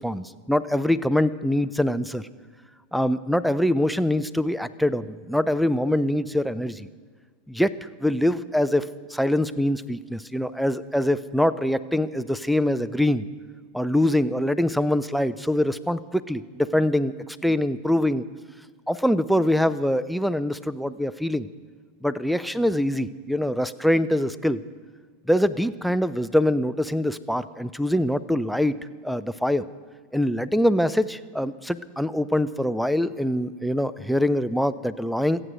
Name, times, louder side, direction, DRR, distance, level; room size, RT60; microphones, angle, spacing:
voice 1, 0.0-2.2 2.9-6.9 7.5-7.7 8.0-8.8 9.1-13.3 13.7-17.1 17.4-18.2 18.9-21.5 22.0-24.6 25.3-28.7 29.0-29.6 30.1-35.4, left 1 dB, ahead, 13 dB, 0.6 m, -24 dB
26.5 x 8.9 x 5.2 m, 1.5 s
figure-of-eight pair, 85°, 0 cm